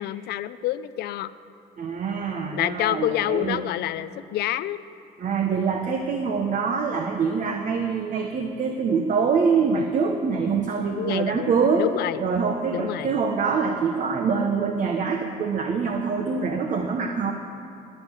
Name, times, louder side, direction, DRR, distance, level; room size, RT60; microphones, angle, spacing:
voice 1, 0.0-1.3 2.5-4.8 11.0-11.5 11.8-12.2 12.7-13.2, left 13 dB, 70° left, 14 dB, 0.6 m, -27 dB
voice 2, 1.8-3.6 5.2-11.9 12.2-17.3, right 5 dB, 50° right, 4 dB, 1.1 m, -24 dB
19.5 x 6.6 x 9.9 m, 2.6 s
cardioid pair, 110°, 17 cm